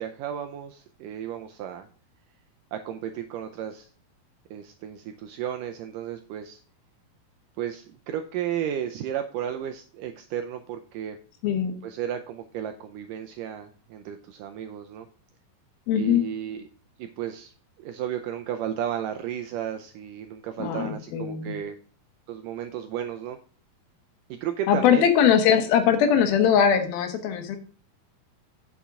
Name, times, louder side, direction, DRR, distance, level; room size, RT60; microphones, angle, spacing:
voice 1, 0.0-1.9 2.7-3.9 4.5-6.6 7.6-11.2 11.8-15.1 15.9-16.7 17.0-17.5 17.8-21.8 22.3-23.4 24.3-25.1, right 10 dB, 85° right, 6 dB, 1.9 m, -33 dB
voice 2, 11.4-11.7 15.9-16.2 20.6-21.6 24.7-27.6, left 8 dB, 75° left, 8 dB, 2.9 m, -21 dB
8.6 x 7.1 x 3.6 m, 0.41 s
omnidirectional pair, 4.4 m